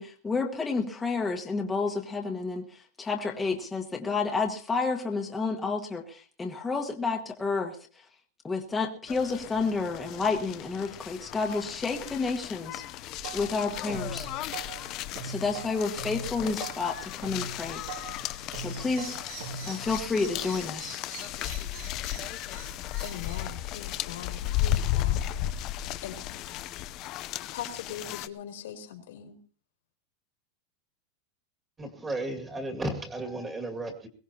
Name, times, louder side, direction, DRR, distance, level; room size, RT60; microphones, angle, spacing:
voice 1, 0.0-7.8 8.4-12.8 13.3-14.3 15.2-17.8 18.1-19.2 19.7-21.0, left 4 dB, 10° left, 0 dB, 1.4 m, -30 dB
sound 1, 9.1-28.3, left 12 dB, 40° left, 0.7 m, -35 dB
sound 2, 12.9-20.7, right 3 dB, 70° right, 6.8 m, -41 dB
sound 3, 16.0-25.3, right 9 dB, 55° right, 5.7 m, -49 dB
voice 2, 23.0-25.3 26.0-26.2 27.5-29.4, left 9 dB, 85° left, 4 dB, 3.6 m, -41 dB
voice 3, 31.8-34.1, right 1 dB, 15° right, 4 dB, 2.2 m, -34 dB
22.0 x 17.5 x 2.9 m, 0.42 s
supercardioid pair, 160°, 0 cm